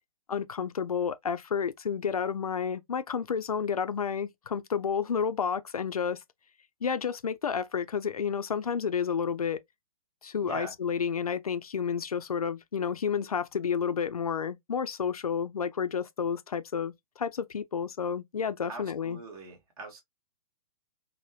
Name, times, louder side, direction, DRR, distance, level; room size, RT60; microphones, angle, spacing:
voice 1, 0.3-6.2 6.8-9.6 10.2-19.2, left 6 dB, 80° left, 0.4 m, -30 dB
voice 2, 10.4-10.7 18.7-20.0, right 3 dB, 40° right, 1.2 m, -42 dB
3.2 x 2.1 x 2.7 m
figure-of-eight pair, 120°, 18 cm